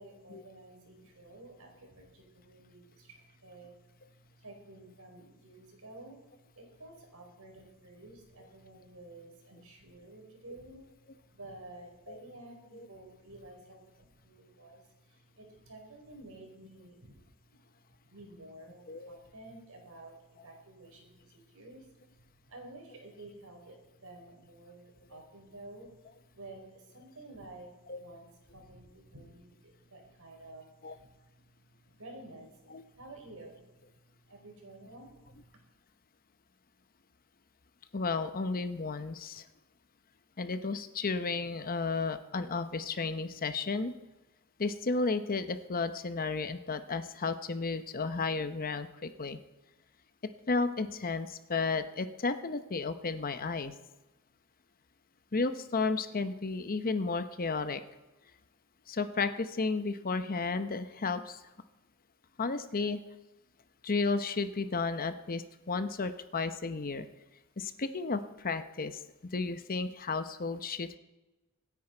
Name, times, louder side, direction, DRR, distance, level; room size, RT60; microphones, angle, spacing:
voice 1, 0.0-6.2 6.5-10.8 11.3-17.2 18.1-21.9 22.5-26.0 26.3-31.1 32.0-33.7 34.3-35.6, right 2 dB, 70° right, 2 dB, 4.7 m, -51 dB
voice 2, 37.9-39.4 40.4-43.9 44.6-49.4 50.5-53.7 55.3-57.8 58.9-61.4 62.4-63.0 63.8-67.1 67.6-69.0 69.3-71.0, left 4 dB, 40° left, 10 dB, 0.8 m, -33 dB
25.5 x 9.8 x 4.5 m, 1.1 s
head